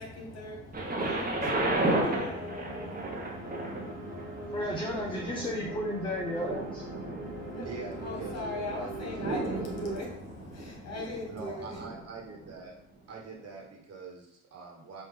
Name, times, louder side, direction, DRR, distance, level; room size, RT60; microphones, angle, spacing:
voice 1, 0.0-5.6 7.2-11.9, left 2 dB, 45° left, -1 dB, 1.8 m, -41 dB
Thunder, 0.7-12.6 13.3-13.4, right 2 dB, 25° right, 1.0 m, -34 dB
sound 1, 1.2-10.0, right 2 dB, 80° right, 1.6 m, -42 dB
voice 2, 4.5-6.8, left 1 dB, 15° left, -1 dB, 0.7 m, -33 dB
voice 3, 7.6-9.8 10.5-10.7 11.3-12.8 13.1-15.0, right 4 dB, 45° right, -1 dB, 1.5 m, -44 dB
4.9 x 2.7 x 3.7 m, 0.73 s
supercardioid pair, 85°, 35 cm